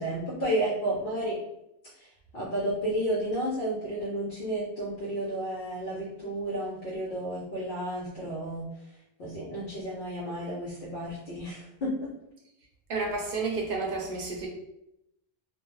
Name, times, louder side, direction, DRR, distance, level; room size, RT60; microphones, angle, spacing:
voice 1, 0.0-1.4 1.9-8.7 9.2-12.1, right 1 dB, 60° left, -6 dB, 0.8 m, -32 dB
voice 2, 12.9-14.5, right 3 dB, 60° right, -1 dB, 0.7 m, -31 dB
2.3 x 2.1 x 3.0 m, 0.84 s
omnidirectional pair, 1.1 m